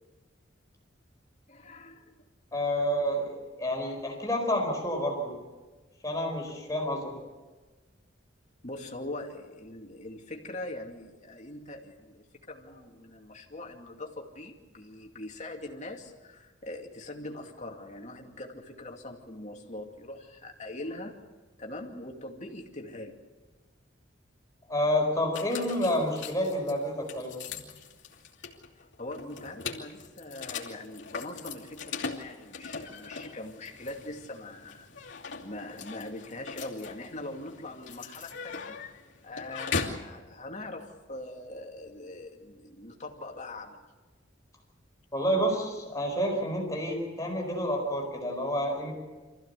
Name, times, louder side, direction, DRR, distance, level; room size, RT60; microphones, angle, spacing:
voice 1, 1.5-2.1 2.6-2.7 8.6-21.2 21.6-23.2 28.8-34.9 35.4-38.9 39.2-43.9, left 2 dB, 40° left, 1 dB, 2.5 m, -42 dB
voice 2, 2.5-3.3 3.6-5.3 6.0-7.1 24.7-27.3 45.1-48.9, equal, 20° left, 0 dB, 4.7 m, -29 dB
sound 1, 25.3-40.1, left 5 dB, 70° left, 2.7 m, -40 dB
25.0 x 15.0 x 8.2 m, 1.3 s
head